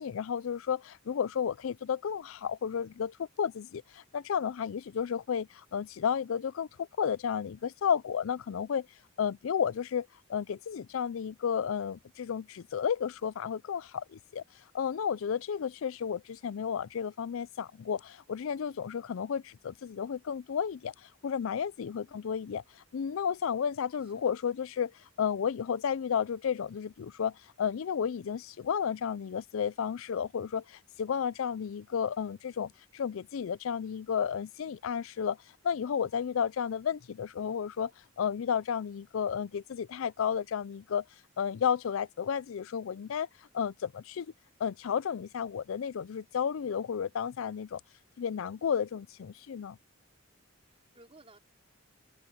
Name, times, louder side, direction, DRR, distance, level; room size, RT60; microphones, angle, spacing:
voice 1, 0.0-8.9 9.2-14.4 14.7-24.9 25.2-35.4 35.6-37.9 38.2-41.0 41.4-44.3 44.6-47.8 48.2-49.8, left 7 dB, 75° left, 0.4 m, -32 dB
voice 2, 21.9-22.6 24.0-24.3 48.6-49.0 50.7-51.4, right 2 dB, 30° right, 4.9 m, -60 dB
head